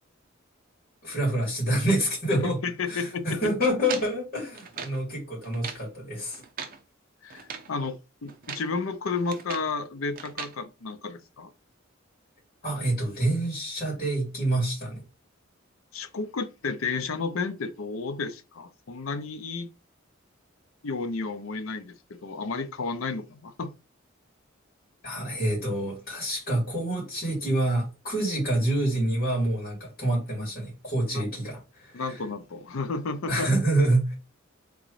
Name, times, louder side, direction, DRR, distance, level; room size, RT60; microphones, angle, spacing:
voice 1, 1.0-2.6 2.9-6.4 12.6-15.0 25.0-32.2 33.3-34.2, right 1 dB, 45° left, 2.6 m, -27 dB
voice 2, 2.3-3.5 7.2-7.4 7.7-11.5 15.9-19.7 20.8-23.7 31.1-31.3 31.9-33.5, left 4 dB, 80° left, 0.6 m, -32 dB
sound 1, 3.8-5.0 5.4-5.9 6.3-6.8 7.3-7.7 8.3-8.7 9.0-9.7 10.2-10.6, right 6 dB, 45° right, 0.7 m, -39 dB
3.8 x 3.8 x 3.1 m
head